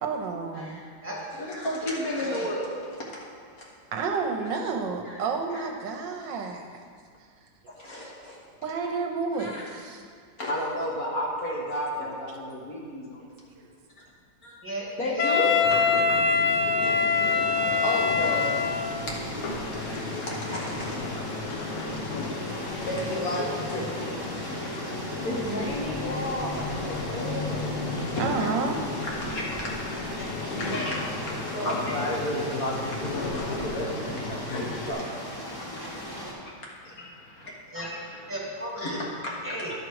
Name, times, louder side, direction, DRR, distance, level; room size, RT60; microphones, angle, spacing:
voice 1, 0.0-0.8 3.9-6.7 8.6-10.0 13.2-13.3 13.6-13.7 16.8-16.9 17.2-17.5 19.9-20.0 28.2-28.8, right 4 dB, 75° right, 3 dB, 1.3 m, -30 dB
voice 2, 0.5-0.9 1.4-2.7 3.6-3.7 5.0-5.2 5.5-5.6 7.8-8.4 9.4-9.6 10.4-13.3 14.4-14.6 15.0-15.5 17.8-18.5 19.8-21.0 21.9-22.0 22.8-24.5 24.7-24.8 25.2-27.7 28.1-28.3 29.0-38.2 38.8-39.3, left 1 dB, 50° left, -3 dB, 1.6 m, -33 dB
voice 3, 2.2-2.5 14.6-15.6 30.2-30.3 31.5-31.8 37.7-37.9 38.3-38.8 39.4-39.7, right 1 dB, 5° right, -5 dB, 1.9 m, -35 dB
Wind instrument woodwind instrument, 15.2-19.0, left 5 dB, 70° left, 1.1 m, -23 dB
sound 1, 15.6-34.9, left 2 dB, 85° left, 1.7 m, -34 dB
sound 2, 16.8-36.3, equal, 15° left, 1.2 m, -38 dB
11.0 x 6.1 x 4.7 m, 2.1 s
omnidirectional pair, 2.1 m